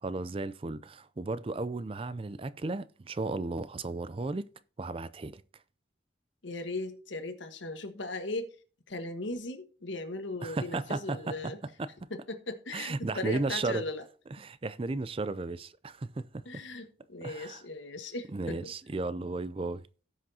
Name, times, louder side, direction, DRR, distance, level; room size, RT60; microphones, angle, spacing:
voice 1, 0.0-4.5 4.8-5.4 10.4-11.5 11.8-12.1 12.7-13.8 14.4-16.6 17.2-17.6 18.3-19.9, right 3 dB, 30° right, 0.4 m, -34 dB
voice 2, 6.4-8.6 8.9-11.6 12.1-14.0 16.4-18.6, left 2 dB, 75° left, 1.4 m, -38 dB
17.5 x 6.0 x 2.8 m
head